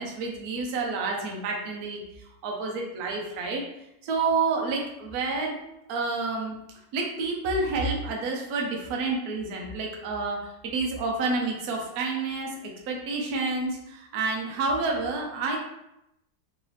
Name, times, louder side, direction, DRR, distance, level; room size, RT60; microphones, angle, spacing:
voice 1, 0.0-2.0 2.4-3.6 4.0-5.6 5.9-6.6 6.9-15.6, right 3 dB, 65° right, 0 dB, 1.0 m, -29 dB
4.0 x 2.8 x 3.2 m, 0.85 s
omnidirectional pair, 2.2 m